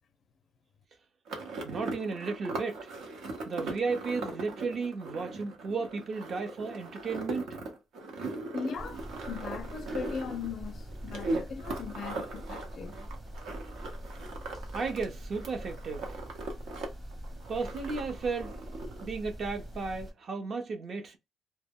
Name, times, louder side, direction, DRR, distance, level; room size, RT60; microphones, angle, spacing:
sound 1, 1.3-15.0 15.3-16.9 17.1-19.1, right 2 dB, 75° right, 0.8 m, -39 dB
voice 1, 1.6-2.9 3.5-7.5 14.7-16.1 17.5-18.5 19.0-21.2, right 4 dB, 45° right, 0.6 m, -34 dB
voice 2, 8.5-13.0, left 6 dB, 50° left, 0.4 m, -39 dB
sound 2, 8.8-20.1, equal, 30° right, 0.9 m, -43 dB
2.1 x 2.1 x 3.5 m
cardioid pair, 125°, 0 cm